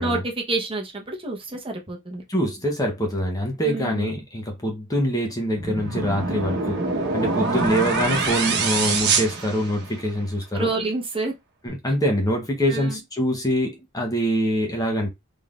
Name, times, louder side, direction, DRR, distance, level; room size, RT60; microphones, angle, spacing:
voice 1, 0.0-2.2 3.6-4.1 7.4-7.7 10.5-11.3 12.7-13.0, right 2 dB, 25° right, 1.0 m, -28 dB
voice 2, 2.3-6.8 7.1-10.7 11.6-15.1, equal, 20° left, 0.9 m, -24 dB
sound 1, 5.6-10.2, right 4 dB, 55° right, 1.1 m, -25 dB
3.9 x 3.4 x 2.5 m
head